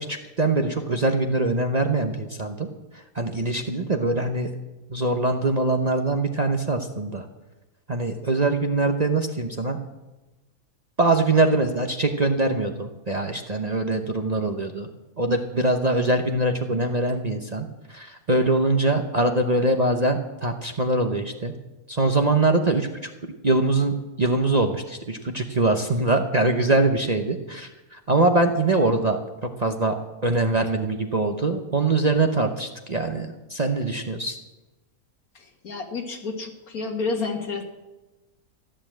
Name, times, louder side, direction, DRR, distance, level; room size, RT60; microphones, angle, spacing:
voice 1, 0.0-2.7 2.9-4.5 4.9-7.3 7.9-9.8 11.0-14.9 15.2-21.5 21.9-30.0 30.2-34.4, right 2 dB, 35° right, 4 dB, 0.8 m, -23 dB
voice 2, 35.4-37.6, left 4 dB, 75° left, 4 dB, 2.1 m, -30 dB
14.0 x 11.0 x 7.5 m, 1.1 s
omnidirectional pair, 1.5 m